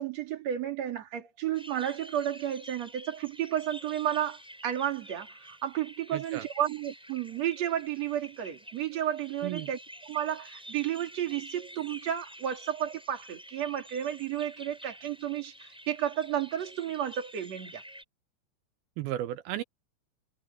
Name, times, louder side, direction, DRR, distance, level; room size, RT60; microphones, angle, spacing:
voice 1, 0.0-9.8 10.1-17.8, right 10 dB, 40° right, 3.5 m, -32 dB
sound 1, 1.5-18.0, equal, ahead, 6.8 m, -49 dB
voice 2, 6.1-6.5 9.4-9.7 19.0-19.6, right 13 dB, 75° right, 2.3 m, -34 dB
omnidirectional pair, 5.1 m